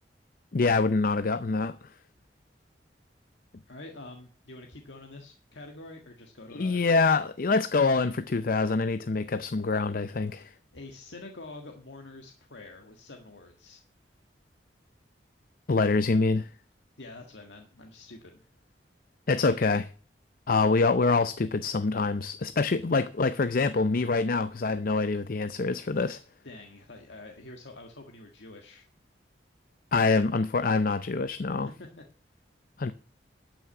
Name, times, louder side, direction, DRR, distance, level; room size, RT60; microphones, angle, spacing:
voice 1, 0.5-1.8 6.5-10.5 15.7-16.5 19.3-19.9 20.5-26.2 29.9-31.7 32.8-32.9, left 3 dB, 50° left, 0.6 m, -25 dB
voice 2, 3.7-6.8 10.7-13.8 17.0-18.4 26.4-28.8 31.8-32.0, left 2 dB, 90° left, 1.7 m, -46 dB
12.5 x 6.2 x 8.3 m
head